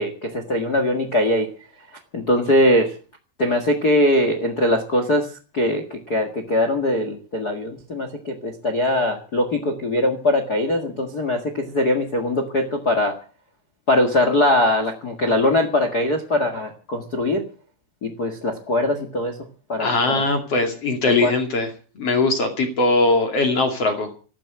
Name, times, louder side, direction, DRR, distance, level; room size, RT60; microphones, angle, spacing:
voice 1, 0.0-1.5 2.1-2.9 3.4-5.3 5.5-13.1 13.9-17.4 18.0-19.3 19.7-20.2 21.1-21.3, left 1 dB, 55° left, 7 dB, 1.0 m, -21 dB
voice 2, 19.8-21.7 22.0-24.2, left 2 dB, 40° left, 5 dB, 2.9 m, -20 dB
15.0 x 12.0 x 7.8 m, 0.39 s
omnidirectional pair, 5.0 m